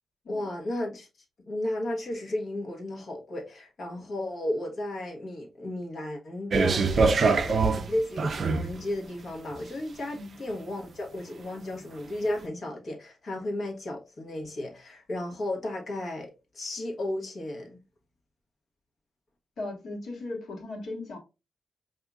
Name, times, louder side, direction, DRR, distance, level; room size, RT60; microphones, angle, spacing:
voice 1, 0.3-1.1 1.5-17.8, left 1 dB, 50° left, 1.2 m, -34 dB
sound 1, 6.5-8.8 9.5-9.6, right 4 dB, 50° right, 0.4 m, -24 dB
voice 2, 19.6-21.2, left 2 dB, 70° left, 1.5 m, -37 dB
5.0 x 2.7 x 2.3 m
cardioid pair, 115°, 0 cm